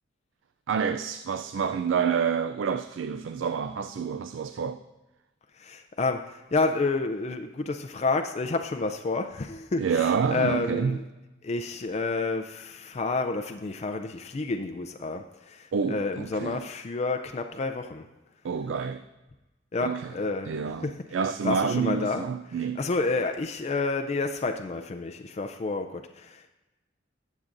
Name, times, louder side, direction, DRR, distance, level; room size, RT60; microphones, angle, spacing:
voice 1, 0.7-4.8 9.8-11.0 15.7-16.7 18.4-19.0 19.8-20.1 20.5-22.8, right 6 dB, 75° right, 0.3 m, -28 dB
voice 2, 5.6-11.0 11.4-18.0 19.7-20.5 20.8-21.0 21.2-26.5, left 3 dB, 35° left, 0.4 m, -30 dB
20.0 x 7.3 x 2.6 m
head